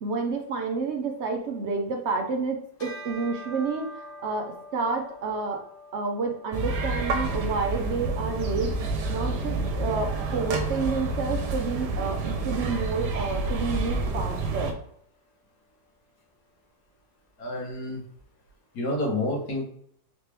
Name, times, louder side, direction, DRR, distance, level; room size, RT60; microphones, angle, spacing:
voice 1, 0.0-5.6 5.9-8.7 9.1-14.8, right 4 dB, 55° right, 3 dB, 0.8 m, -29 dB
Bell, 2.8-12.5, equal, 35° left, 1.3 m, -47 dB
sound 1, 6.5-14.7, right 3 dB, 85° right, 1.4 m, -29 dB
voice 2, 17.4-18.0 18.7-19.6, left 1 dB, 75° left, -1 dB, 1.8 m, -29 dB
4.0 x 3.1 x 3.4 m, 0.64 s
omnidirectional pair, 1.7 m